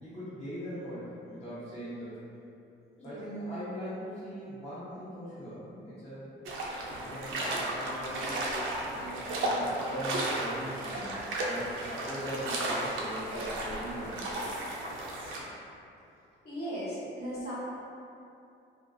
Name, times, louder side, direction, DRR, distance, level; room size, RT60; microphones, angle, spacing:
voice 1, 0.0-2.3 3.0-6.4 7.0-8.7 8.9-14.4, equal, 30° left, -13 dB, 0.8 m, -40 dB
voice 2, 3.0-3.3 16.4-17.5, equal, 55° left, -10 dB, 1.1 m, -37 dB
sound 1, 6.5-15.4, right 1 dB, 85° right, 0.4 m, -34 dB
2.3 x 2.2 x 2.5 m, 2.6 s
cardioid pair, 90°, 20 cm